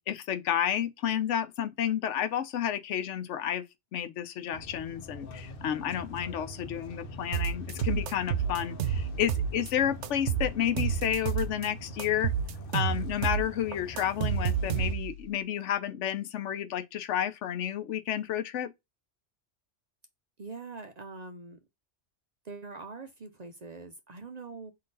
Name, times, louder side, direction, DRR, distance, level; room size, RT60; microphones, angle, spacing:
voice 1, 0.0-3.6 3.9-12.3 12.7-18.7, left 10 dB, 80° left, 1.0 m, -31 dB
sound 1, 4.5-15.0, left 1 dB, 55° left, 0.8 m, -43 dB
sound 2, 7.3-9.7 10.0-11.7 12.0-15.2, right 8 dB, 80° right, 0.9 m, -30 dB
voice 2, 20.4-21.6 22.4-24.7, right 4 dB, 50° right, 0.5 m, -43 dB
3.9 x 2.7 x 3.8 m
omnidirectional pair, 1.2 m